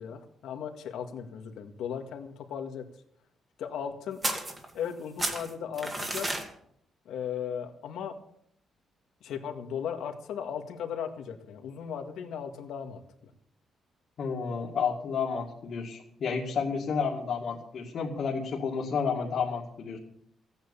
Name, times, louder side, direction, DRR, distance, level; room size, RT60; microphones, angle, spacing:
voice 1, 0.0-2.8 3.6-4.2 4.7-6.3 7.1-8.1 9.2-13.0, left 8 dB, 90° left, 6 dB, 1.8 m, -36 dB
sound 1, 4.2-4.9 5.2-6.5, right 2 dB, 15° right, 1.9 m, -32 dB
voice 2, 14.2-20.0, left 5 dB, 50° left, -3 dB, 2.2 m, -31 dB
16.0 x 9.2 x 7.1 m, 0.69 s
cardioid pair, 170°, 0 cm